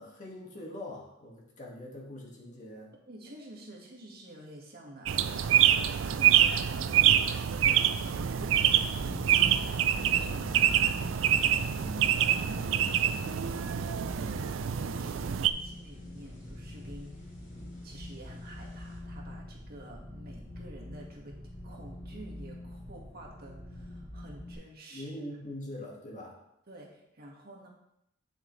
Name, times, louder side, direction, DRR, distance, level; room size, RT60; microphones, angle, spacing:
voice 1, 0.0-2.9 24.9-26.4, left 1 dB, 40° left, -2 dB, 1.9 m, -43 dB
voice 2, 3.1-7.7 8.3-8.9 9.9-17.4 17.8-25.1 26.7-27.7, right 1 dB, 50° right, -1 dB, 1.9 m, -49 dB
sound 1, 5.1-15.5, right 10 dB, 75° right, 0.4 m, -26 dB
sound 2, 7.8-24.5, left 1 dB, 20° left, 3.4 m, -45 dB
sound 3, 9.0-19.0, left 1 dB, 65° left, 3.2 m, -49 dB
9.0 x 7.1 x 3.2 m, 0.80 s
head